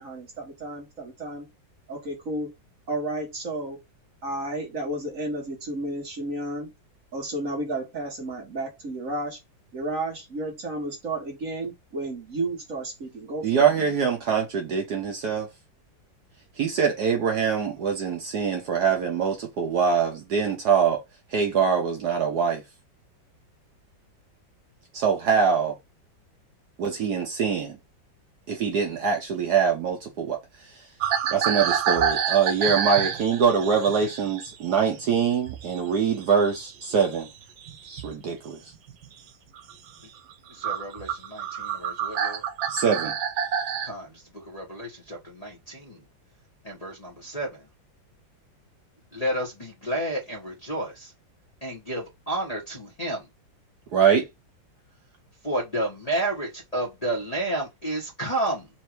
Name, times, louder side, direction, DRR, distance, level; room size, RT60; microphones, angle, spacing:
voice 1, 0.0-1.5 1.9-2.5 2.9-3.8 4.2-6.7 7.1-9.4 9.7-13.9, right 2 dB, 45° right, 1.8 m, -32 dB
voice 2, 13.4-15.5 16.6-21.0 21.3-22.6 24.9-25.7 26.8-27.8 28.5-30.4 31.3-37.3 37.9-38.6 42.7-43.1 53.9-54.3, right 6 dB, 65° right, 1.3 m, -23 dB
sound 1, 31.0-35.8 36.1-38.2 38.7-39.1 39.6-39.7 40.3-40.4 40.6-43.9, right 8 dB, 85° right, 1.6 m, -28 dB
voice 3, 40.5-42.4 43.8-46.0 46.6-47.7 49.1-51.1 51.6-53.3 55.4-58.7, right 1 dB, 25° left, 1.2 m, -31 dB
4.5 x 2.6 x 4.5 m
omnidirectional pair, 2.1 m